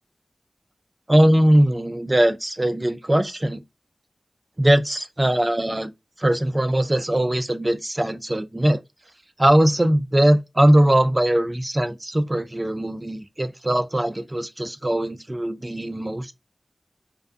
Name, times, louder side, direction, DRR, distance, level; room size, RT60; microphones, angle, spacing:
voice 1, 1.1-3.6 4.6-5.9 6.2-8.8 9.4-16.3, right 1 dB, 30° right, 0.5 m, -20 dB
2.3 x 2.2 x 2.5 m
cardioid pair, 40°, 0 cm